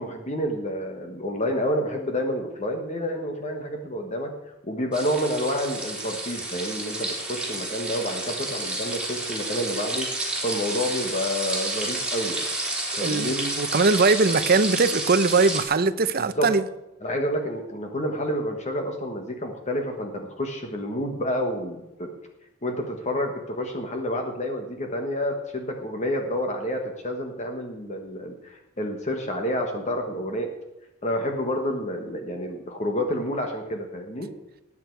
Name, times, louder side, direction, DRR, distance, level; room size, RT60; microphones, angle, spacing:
voice 1, 0.0-4.3 4.6-12.4 13.0-13.4 16.2-16.5 17.0-22.1 22.6-30.5 31.0-34.3, equal, 35° left, 3 dB, 1.4 m, -29 dB
sound 1, 4.9-15.6, right 2 dB, 5° right, 2.9 m, -30 dB
voice 2, 13.0-16.6, right 4 dB, 50° right, 12 dB, 0.7 m, -21 dB
19.5 x 8.6 x 4.7 m, 0.99 s
head